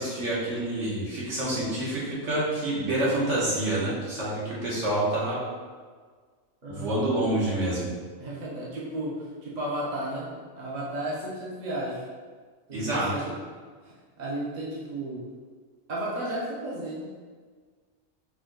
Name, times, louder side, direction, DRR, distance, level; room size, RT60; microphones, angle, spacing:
voice 1, 0.0-5.4 6.7-7.9 12.7-13.1, right 1 dB, 60° right, -7 dB, 1.6 m, -27 dB
voice 2, 6.6-7.1 8.2-10.3 10.6-12.0 12.7-13.4 13.8-13.9 14.2-15.2 15.9-17.1, right 1 dB, 35° right, -6 dB, 0.9 m, -33 dB
5.1 x 2.5 x 3.8 m, 1.6 s
omnidirectional pair, 1.4 m